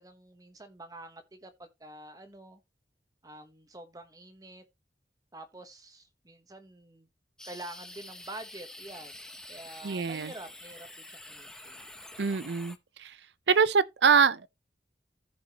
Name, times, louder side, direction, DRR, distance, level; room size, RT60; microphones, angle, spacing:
voice 1, 0.0-2.6 3.2-4.6 5.3-7.1 7.4-9.2 9.5-11.9, right 1 dB, 20° right, 1.1 m, -47 dB
sound 1, 7.4-12.8, left 1 dB, 5° left, 0.9 m, -47 dB
voice 2, 9.8-10.3 12.2-13.2 13.5-14.5, right 5 dB, 75° right, 0.6 m, -24 dB
14.5 x 5.2 x 2.9 m
head